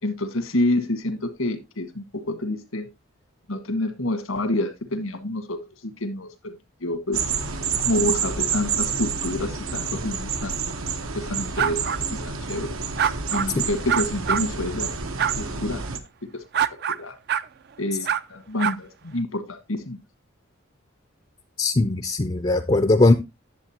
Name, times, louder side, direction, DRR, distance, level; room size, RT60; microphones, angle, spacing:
voice 1, 0.0-2.9 3.5-5.6 6.0-6.5 6.8-7.3 7.8-10.5 11.1-12.8 13.3-14.9 15.3-15.8 17.0-17.1 17.8-20.0, left 1 dB, 85° left, 1.7 m, -28 dB
sound 1, 7.1-16.0, right 6 dB, 85° right, 1.2 m, -28 dB
sound 2, 11.6-12.0 13.0-13.5 13.9-14.4 15.2-15.3 16.5-17.0 17.3-17.5 18.0-18.2 18.6-18.7, right 8 dB, 50° right, 0.4 m, -23 dB
voice 2, 21.6-23.1, left 2 dB, 25° left, 0.5 m, -19 dB
10.5 x 7.6 x 2.9 m
head